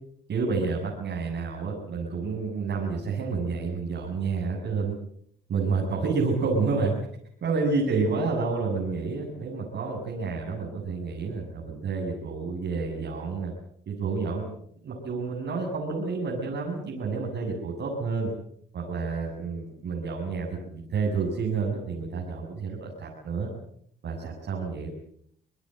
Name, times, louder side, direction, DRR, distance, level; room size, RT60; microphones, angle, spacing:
voice 1, 0.3-4.9 5.5-6.9 7.4-13.5 13.9-14.5 14.8-18.3 18.7-23.5 24.0-24.9, right 4 dB, 60° right, -1 dB, 7.8 m, -29 dB
26.5 x 20.0 x 7.9 m, 0.66 s
cardioid pair, 90°, 20 cm